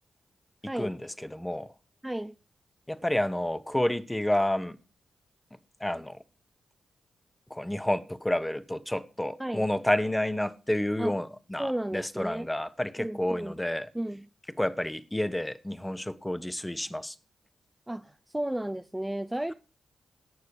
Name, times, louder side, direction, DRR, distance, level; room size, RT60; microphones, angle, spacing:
voice 1, 0.7-1.7 2.9-4.8 5.8-6.2 7.5-13.9 14.6-17.1, left 1 dB, 10° left, 1.1 m, -30 dB
voice 2, 2.0-2.3 9.4-9.7 11.0-11.1 11.6-12.5 13.0-13.6 13.9-14.3 17.9-19.5, right 1 dB, 10° right, 0.6 m, -33 dB
18.0 x 6.7 x 5.1 m
cardioid pair, 55°, 0 cm